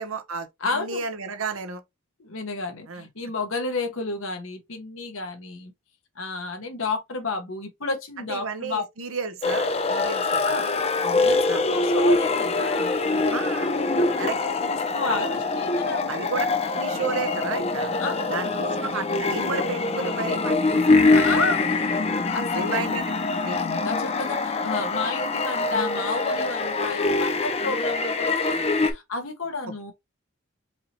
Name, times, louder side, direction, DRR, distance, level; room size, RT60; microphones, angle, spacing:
voice 1, 0.0-0.5 0.7-1.8 2.9-3.1 8.3-10.7 11.5-11.6 13.3-13.7 14.2-14.4 15.1-15.4 16.1-16.5 16.8-17.9 18.3-21.3 22.5-23.0 23.4-23.6, right 4 dB, 75° right, 0.9 m, -32 dB
voice 2, 0.6-1.0 2.2-5.7 6.2-8.8 10.4-10.7 11.0-16.1 18.0-18.9 21.0-21.6 22.3-23.0 23.6-29.9, left 3 dB, 70° left, 1.1 m, -31 dB
sound 1, 9.4-28.9, left 3 dB, 30° left, 0.5 m, -24 dB
4.7 x 2.9 x 2.9 m
head